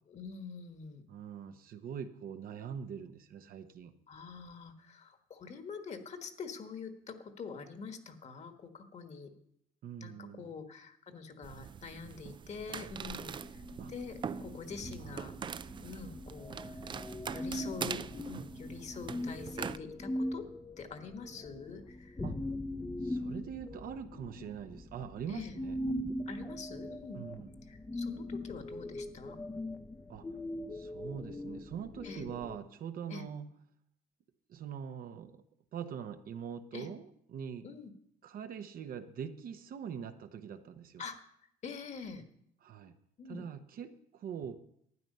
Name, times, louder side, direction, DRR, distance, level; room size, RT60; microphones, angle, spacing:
voice 1, 0.1-1.0 4.1-9.3 10.0-13.6 13.9-15.3 15.8-16.9 17.3-20.4 20.8-22.2 24.1-24.5 25.3-25.6 26.3-27.2 27.7-29.4 32.0-32.3 33.1-33.3 36.7-36.9 37.6-37.9 41.0-41.2 41.6-42.2 43.2-43.4, left 5 dB, 40° left, 7 dB, 1.5 m, -45 dB
voice 2, 1.1-3.9 9.8-10.5 13.8-13.9 15.0-15.3 22.2-22.4 23.0-25.8 27.1-27.6 30.1-30.3 30.7-33.5 34.5-35.4 35.7-37.7 38.2-41.0 42.6-42.9 43.3-44.5, right 8 dB, 60° right, 8 dB, 1.0 m, -43 dB
sound 1, 11.4-19.8, right 7 dB, 30° right, 0.4 m, -43 dB
sound 2, 13.4-32.6, left 1 dB, 15° left, 0.7 m, -41 dB
12.5 x 9.3 x 5.5 m, 0.71 s
cardioid pair, 110°, 17 cm